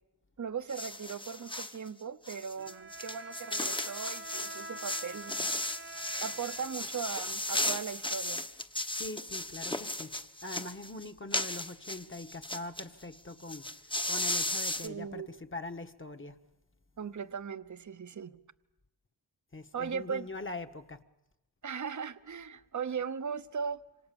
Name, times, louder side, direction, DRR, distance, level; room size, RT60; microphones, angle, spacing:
voice 1, 0.4-5.5 6.2-8.5 14.8-15.3 17.0-18.4 19.7-20.3 21.6-23.8, right 6 dB, 45° right, 0.9 m, -38 dB
sound 1, 0.7-1.8 2.2-12.8 13.1-13.2 13.4-14.9, left 1 dB, 10° left, 1.0 m, -35 dB
Bowed string instrument, 2.6-7.6, right 1 dB, 25° right, 1.2 m, -47 dB
voice 2, 8.9-10.1 10.4-13.7 14.1-15.2 15.5-16.3 19.5-21.0, left 2 dB, 30° left, 1.4 m, -42 dB
26.5 x 26.5 x 7.0 m
wide cardioid pair, 110°, 42 cm